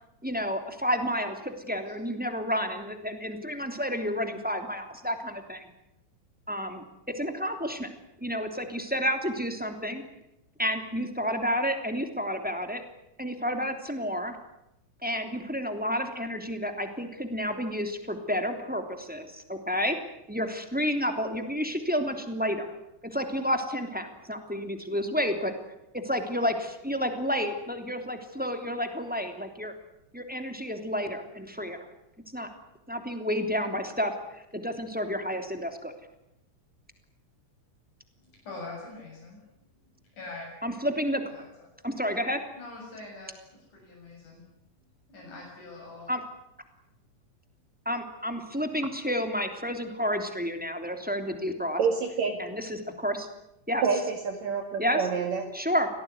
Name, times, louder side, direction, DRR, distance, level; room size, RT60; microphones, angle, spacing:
voice 1, 0.2-5.7 6.5-6.8 7.1-7.9 8.2-10.0 10.6-12.8 13.2-14.4 15.0-20.0 20.3-22.7 23.0-25.5 25.9-29.7 30.1-31.8 32.3-32.5 32.9-34.1 34.5-36.0 40.6-41.2 41.8-42.4 46.1-46.2 47.8-51.8 52.4-53.3 53.7-53.8 54.8-55.0 55.5-55.9, equal, 5° right, 5 dB, 2.7 m, -30 dB
voice 2, 38.2-39.4 40.1-40.5 41.3-41.5 42.5-44.4 45.1-46.1, left 2 dB, 80° left, -2 dB, 8.8 m, -43 dB
voice 3, 51.8-52.4 53.8-55.4, right 5 dB, 65° right, 4 dB, 3.3 m, -27 dB
26.5 x 18.0 x 9.7 m, 0.87 s
omnidirectional pair, 3.5 m